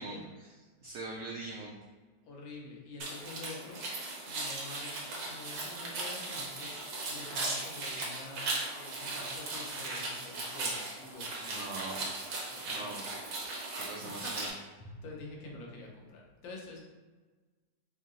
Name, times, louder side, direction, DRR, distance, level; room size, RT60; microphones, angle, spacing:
voice 1, 0.0-1.8 11.5-13.2 13.7-14.5, right 2 dB, 80° right, -1 dB, 0.7 m, -43 dB
voice 2, 2.2-3.8 4.3-6.7 7.1-11.6 12.5-13.0 14.0-14.3 14.8-16.8, left 3 dB, 85° left, -1 dB, 1.6 m, -47 dB
sound 1, 3.0-14.5, right 2 dB, 65° right, 1.3 m, -38 dB
3.4 x 2.8 x 3.7 m, 1.3 s
omnidirectional pair, 2.0 m